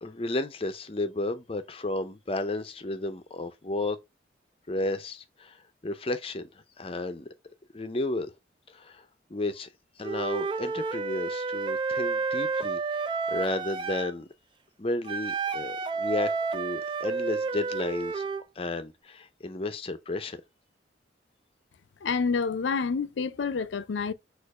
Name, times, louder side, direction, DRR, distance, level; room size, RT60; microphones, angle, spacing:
voice 1, 0.0-4.0 4.7-7.3 7.7-8.3 8.7-9.7 10.0-14.3 14.8-18.3 18.6-20.4, left 2 dB, 30° left, 0.5 m, -33 dB
Wind instrument woodwind instrument, 10.0-14.1 15.1-18.4, right 4 dB, 25° right, 0.3 m, -30 dB
voice 2, 22.0-24.1, left 5 dB, 80° left, 0.5 m, -28 dB
4.4 x 2.5 x 4.7 m
head